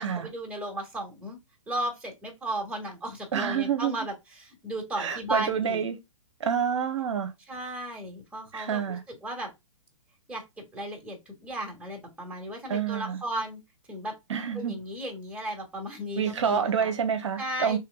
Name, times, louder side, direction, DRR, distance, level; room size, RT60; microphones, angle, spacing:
voice 1, 0.0-1.4 1.7-5.8 7.5-9.5 10.3-13.6 13.9-14.2 14.5-16.9 17.4-17.8, right 1 dB, 5° right, 1.7 m, -35 dB
voice 2, 3.3-4.0 5.0-5.9 6.4-7.3 8.5-9.0 12.7-13.2 14.3-14.7 16.2-17.8, right 7 dB, 55° right, 0.8 m, -28 dB
4.6 x 3.2 x 3.6 m
figure-of-eight pair, 125°, 18 cm